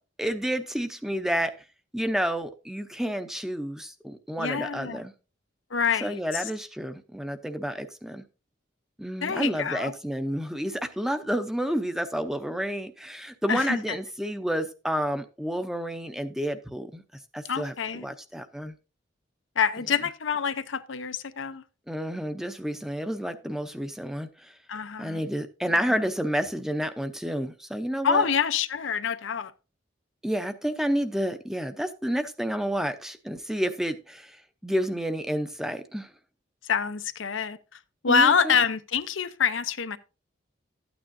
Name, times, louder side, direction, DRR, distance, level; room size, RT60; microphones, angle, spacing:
voice 1, 0.2-1.5 1.9-5.1 6.0-8.2 9.0-17.0 17.3-17.7 18.0-18.7 21.9-24.5 25.0-28.2 30.2-34.4 34.6-36.1 38.1-38.6, equal, ahead, 0.6 m, -30 dB
voice 2, 4.4-5.0 5.7-6.4 9.2-9.9 13.5-13.8 17.4-18.1 19.6-21.6 24.7-25.2 25.8-26.0 28.0-29.5 36.6-37.6 38.0-40.0, left 6 dB, 85° left, 0.7 m, -26 dB
12.5 x 8.9 x 2.6 m
head